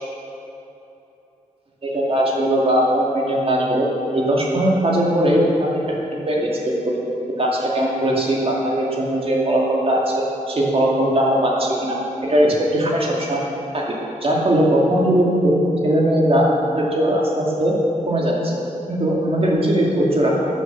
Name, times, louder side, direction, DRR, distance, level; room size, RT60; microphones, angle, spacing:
voice 1, 1.8-3.9 4.1-7.0 7.4-12.0 12.2-13.4 13.7-13.9 14.2-15.6 15.8-16.5 16.7-17.8 18.1-18.6 18.9-20.5, right 1 dB, 40° right, -3 dB, 2.6 m, -19 dB
13.0 x 7.6 x 7.0 m, 3.0 s
wide cardioid pair, 90°, 14 cm